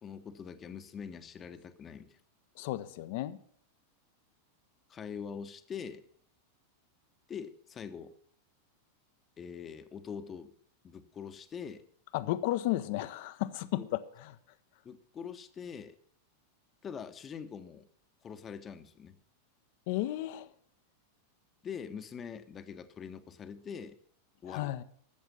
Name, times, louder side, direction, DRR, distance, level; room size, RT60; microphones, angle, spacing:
voice 1, 0.0-2.2 4.9-6.0 7.3-8.1 9.4-10.5 10.8-11.8 13.8-13.9 14.8-15.9 16.8-17.9 18.2-19.2 21.6-24.0 24.4-24.7, left 7 dB, 25° left, 0.9 m, -43 dB
voice 2, 2.6-3.4 12.1-14.4 19.9-20.5 24.4-24.8, left 15 dB, 50° left, 0.7 m, -33 dB
14.0 x 7.3 x 6.7 m
figure-of-eight pair, 90°, 0 cm